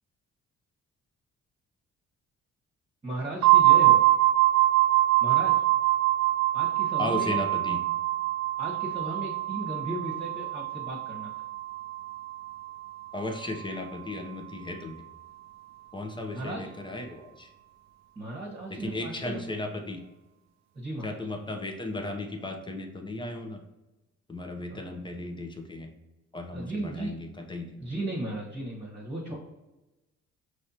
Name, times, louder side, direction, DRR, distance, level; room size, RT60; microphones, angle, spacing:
voice 1, 3.0-4.0 5.2-5.5 6.5-7.4 8.6-11.3 16.3-16.6 18.1-19.4 20.7-21.2 24.7-24.9 26.5-27.1 27.8-29.3, right 1 dB, 20° right, -4 dB, 1.3 m, -36 dB
sound 1, 3.4-13.1, right 16 dB, 65° right, 0.4 m, -24 dB
voice 2, 7.0-7.9 13.1-15.0 15.9-17.5 18.7-20.0 21.0-23.6 24.3-25.9 26.3-27.8, left 2 dB, 15° left, 4 dB, 0.8 m, -35 dB
5.3 x 3.3 x 2.9 m, 1.0 s
cardioid pair, 90°, 30 cm